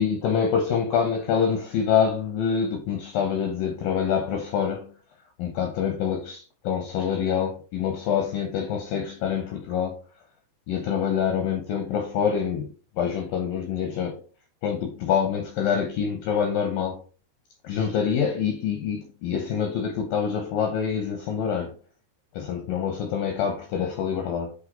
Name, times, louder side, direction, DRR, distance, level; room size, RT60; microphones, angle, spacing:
voice 1, 0.0-4.9 5.4-10.0 10.7-12.7 13.0-14.2 14.6-17.0 17.6-21.7 22.3-24.5, left 7 dB, 80° left, 2.0 m, -26 dB
8.1 x 3.3 x 3.9 m
omnidirectional pair, 5.1 m